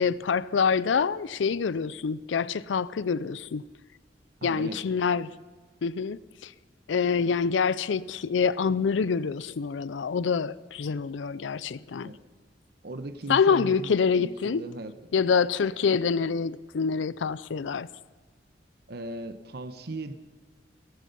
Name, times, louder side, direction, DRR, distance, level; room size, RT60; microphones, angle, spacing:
voice 1, 0.0-3.6 4.4-5.3 5.8-6.5 6.9-12.1 13.3-14.6 15.1-17.9, left 5 dB, 85° left, 18 dB, 0.4 m, -26 dB
voice 2, 4.4-4.8 12.0-12.2 12.8-14.9 18.9-20.1, right 2 dB, 60° right, 10 dB, 1.0 m, -37 dB
17.5 x 14.5 x 5.4 m, 1.4 s
head